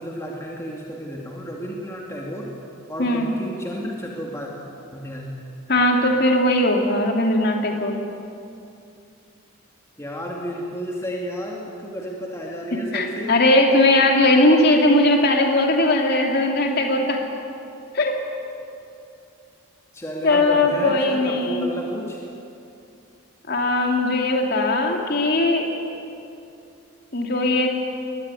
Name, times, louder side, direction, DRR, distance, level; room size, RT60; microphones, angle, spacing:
voice 1, 0.0-2.5 2.9-4.5 4.9-5.3 10.0-13.3 19.9-22.2, equal, 15° left, -2 dB, 2.4 m, -32 dB
voice 2, 5.7-8.0 12.9-17.2 17.9-18.2 20.2-21.7 23.5-25.7 27.1-27.7, left 1 dB, 50° left, 2 dB, 2.8 m, -19 dB
23.0 x 19.5 x 9.8 m, 2.6 s
head